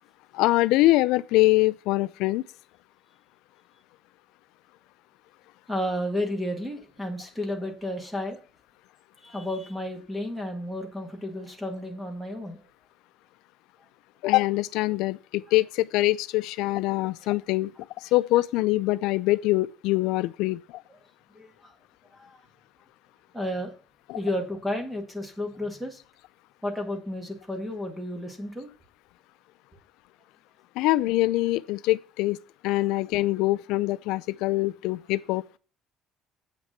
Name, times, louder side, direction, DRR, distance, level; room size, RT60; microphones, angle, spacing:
voice 1, 0.3-2.4 14.2-17.7 18.0-20.8 24.1-24.2 30.8-32.4 32.6-35.4, left 18 dB, 85° left, 0.4 m, -24 dB
voice 2, 5.7-8.4 9.2-12.6 21.3-21.7 22.1-22.4 23.3-23.7 24.1-26.0 26.6-28.7, left 1 dB, 5° right, 1.8 m, -32 dB
8.3 x 6.0 x 5.7 m
cardioid pair, 180°, 0 cm